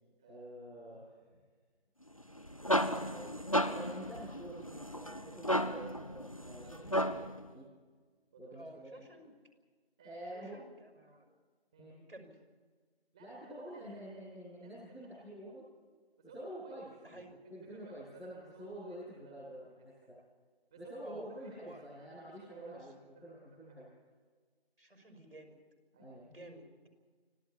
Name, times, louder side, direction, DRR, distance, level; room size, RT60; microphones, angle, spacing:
voice 1, 0.2-1.3 2.9-7.6 8.3-8.8 10.0-10.6 11.2-11.3 11.7-11.9 13.1-15.6 16.2-17.2 17.4-20.1 20.7-23.8 25.9-26.2, right 1 dB, 5° right, -8 dB, 2.6 m, -48 dB
sound 1, 2.2-7.4, equal, 35° left, 0.7 m, -34 dB
voice 2, 8.5-9.3 10.3-11.3 11.9-12.4 17.0-17.3 21.0-21.3 21.6-21.8 22.7-22.9 24.8-25.6 26.3-26.9, right 1 dB, 65° right, 6 dB, 5.9 m, -52 dB
25.5 x 15.5 x 8.6 m, 1.5 s
figure-of-eight pair, 170°, 31 cm